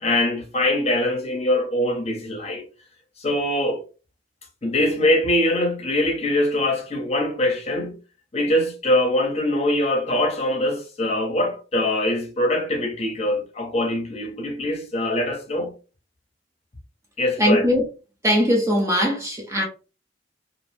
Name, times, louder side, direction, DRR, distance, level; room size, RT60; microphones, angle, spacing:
voice 1, 0.0-2.6 3.2-3.8 4.6-8.0 8.3-15.7 17.2-17.7, left 1 dB, 35° left, 0.7 m, -23 dB
voice 2, 17.4-17.8 18.2-19.7, equal, 15° right, 0.5 m, -20 dB
2.5 x 2.0 x 3.1 m
head